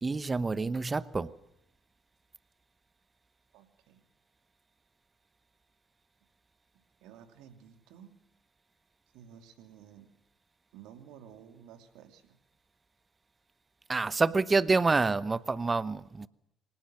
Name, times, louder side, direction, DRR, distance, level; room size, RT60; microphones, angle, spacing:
voice 1, 0.0-1.3 13.9-16.3, right 3 dB, 25° right, 1.0 m, -27 dB
voice 2, 3.5-4.1 7.0-8.2 9.1-10.1 10.7-12.4, right 9 dB, 70° right, 2.8 m, -53 dB
25.0 x 18.0 x 6.5 m
hypercardioid pair, 55°, 0 cm